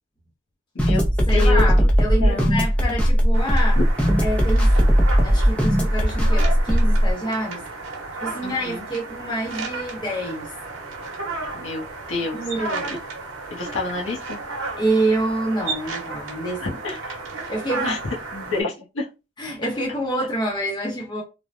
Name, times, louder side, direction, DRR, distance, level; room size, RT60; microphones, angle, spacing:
voice 1, 0.7-1.1 1.3-1.9 2.2-2.5 3.8-3.9 8.4-8.9 11.5-12.4 12.9-13.0 13.5-14.4 16.6-17.2 17.8-18.0 18.3-19.1, left 3 dB, 75° left, 0.8 m, -28 dB
sound 1, 0.8-7.1, equal, 5° left, 0.4 m, -18 dB
voice 2, 1.3-3.8 4.2-4.7 5.2-7.6 8.2-10.5 12.3-12.9 14.8-16.9 17.5-18.0 19.4-21.2, right 1 dB, 20° left, 0.8 m, -27 dB
sound 2, 3.3-18.6, right 3 dB, 80° right, 0.8 m, -33 dB
3.2 x 2.1 x 2.5 m
head